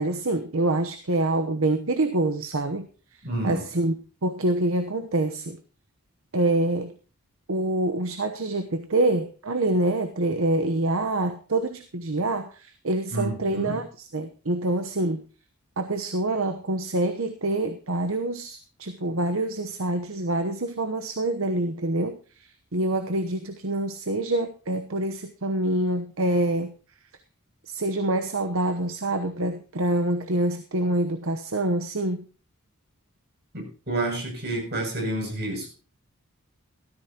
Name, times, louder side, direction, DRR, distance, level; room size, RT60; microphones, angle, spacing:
voice 1, 0.0-3.9 4.2-5.6 6.3-7.0 7.5-15.2 15.8-26.7 27.7-32.3, right 2 dB, 65° right, 8 dB, 1.0 m, -26 dB
voice 2, 3.2-3.6 13.1-13.8 33.5-35.7, right 1 dB, 50° right, 1 dB, 7.3 m, -29 dB
16.5 x 14.0 x 2.9 m, 0.36 s
head